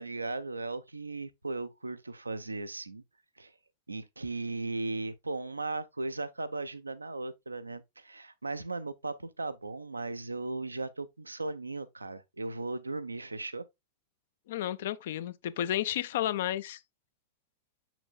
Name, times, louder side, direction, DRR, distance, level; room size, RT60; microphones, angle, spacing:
voice 1, 0.0-3.0 3.4-3.5 3.9-13.6, right 3 dB, 80° right, 0.6 m, -37 dB
voice 2, 14.5-16.8, left 12 dB, 55° left, 0.5 m, -32 dB
6.8 x 6.0 x 2.3 m
figure-of-eight pair, 90°, 0 cm